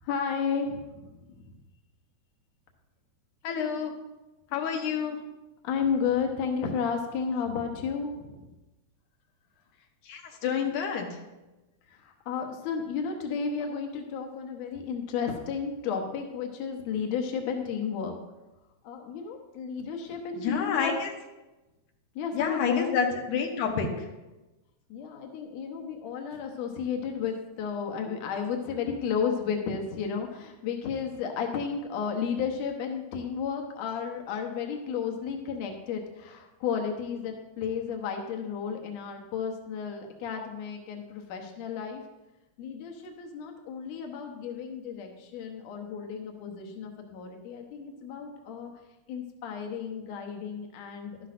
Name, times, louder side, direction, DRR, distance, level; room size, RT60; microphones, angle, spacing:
voice 1, 0.0-1.5 5.6-8.4 11.9-18.2 18.8-20.9 22.2-22.9 24.9-42.0 42.6-48.7 49.1-51.2, left 6 dB, 70° left, 3 dB, 2.1 m, -33 dB
voice 2, 3.4-3.9 4.5-5.2 10.1-11.1 20.3-21.1 22.3-24.1, left 6 dB, 90° left, 2 dB, 2.5 m, -28 dB
12.0 x 11.5 x 2.5 m, 1.1 s
omnidirectional pair, 3.4 m